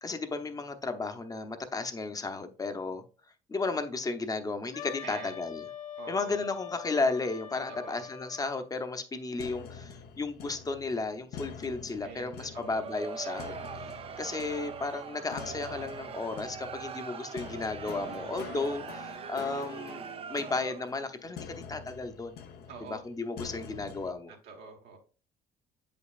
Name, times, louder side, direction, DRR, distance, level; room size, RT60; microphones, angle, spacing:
voice 1, 0.0-3.0 3.5-5.6 6.1-13.6 14.2-22.4 22.8-24.3, left 3 dB, 20° left, 0.8 m, -34 dB
Wind instrument woodwind instrument, 4.7-8.6, left 9 dB, 50° left, 0.5 m, -43 dB
voice 2, 5.0-5.4 6.0-6.4 7.7-8.0 12.0-12.8 18.0-18.5 22.7-23.0 24.3-25.0, right 5 dB, 75° right, 1.3 m, -46 dB
sound 1, 9.4-24.1, left 7 dB, 70° left, 0.9 m, -46 dB
Crowd, 12.6-21.0, right 7 dB, 35° right, 0.4 m, -42 dB
7.8 x 5.2 x 2.4 m
cardioid pair, 110°, 17 cm